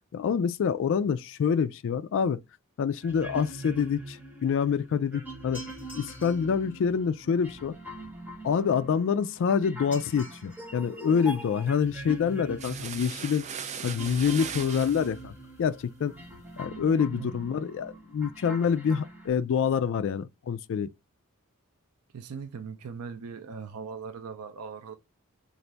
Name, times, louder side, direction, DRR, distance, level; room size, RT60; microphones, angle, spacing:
voice 1, 0.1-2.4 2.8-5.6 5.9-7.7 8.4-13.4 13.8-16.1 16.6-20.9, left 6 dB, 60° left, 0.3 m, -27 dB
sound 1, 3.0-19.3, right 1 dB, 10° right, 0.8 m, -43 dB
sound 2, 5.5-6.5 9.9-10.7 11.0-11.1 12.0-12.1 12.4-12.5 12.7-12.9 13.2-13.3, left 2 dB, 10° left, 2.7 m, -48 dB
sound 3, 12.6-15.1, right 7 dB, 30° right, 0.3 m, -38 dB
voice 2, 22.1-24.9, right 6 dB, 90° right, 0.5 m, -39 dB
4.0 x 2.5 x 3.3 m
head